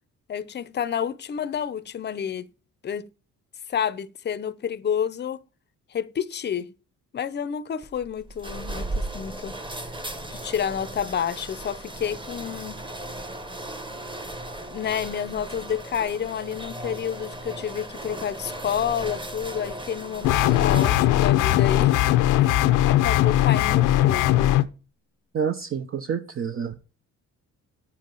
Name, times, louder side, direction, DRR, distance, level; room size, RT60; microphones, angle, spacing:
voice 1, 0.3-2.5 2.8-3.1 3.7-5.4 5.9-6.7 7.1-9.6 10.3-12.8 14.6-21.9 22.3-24.5, left 8 dB, 35° left, 0.6 m, -30 dB
sound 1, 7.8-21.3, right 1 dB, 15° right, 1.1 m, -36 dB
sound 2, 20.2-24.6, left 13 dB, 90° left, 0.6 m, -19 dB
voice 2, 25.3-26.8, right 7 dB, 45° right, 0.7 m, -28 dB
9.2 x 7.3 x 3.9 m
cardioid pair, 90°, 30 cm